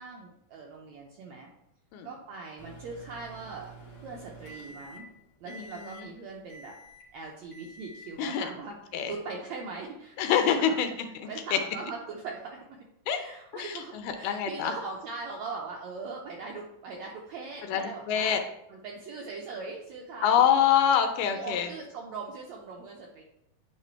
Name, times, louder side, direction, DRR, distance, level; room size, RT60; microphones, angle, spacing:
voice 1, 0.0-1.5 2.0-3.7 4.0-5.1 5.4-6.8 7.1-8.7 9.1-10.1 10.4-10.8 11.3-12.8 13.1-18.3 18.7-20.5 21.3-23.2, right 4 dB, 80° right, 0 dB, 1.6 m, -40 dB
Microwave oven, 2.6-5.1 5.5-6.0 6.5-7.1 7.5-8.1, right 1 dB, 65° left, 1.0 m, -48 dB
voice 2, 8.2-8.5 8.9-9.1 10.2-10.9 11.5-11.6 13.1-13.2 13.5-13.7 14.0-14.7 17.7-17.8 18.1-18.4 20.2-21.7, left 8 dB, 80° left, 6 dB, 2.2 m, -25 dB
9.1 x 3.2 x 4.4 m, 0.80 s
omnidirectional pair, 3.9 m